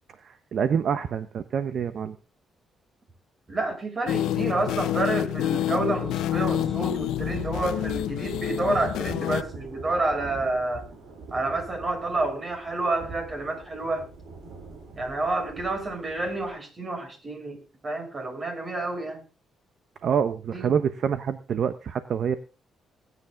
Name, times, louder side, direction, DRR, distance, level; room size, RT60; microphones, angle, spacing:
voice 1, 0.2-2.2 20.0-22.4, right 7 dB, 60° right, 11 dB, 1.0 m, -26 dB
voice 2, 3.5-10.9 11.3-14.1 15.0-19.2 20.5-20.8, right 2 dB, 35° right, 5 dB, 6.1 m, -29 dB
sound 1, 4.1-9.4, left 13 dB, 85° left, 0.6 m, -28 dB
Thunder / Rain, 6.0-16.5, right 3 dB, 75° right, 6.0 m, -42 dB
21.0 x 9.8 x 3.6 m, 0.31 s
cardioid pair, 90°, 0 cm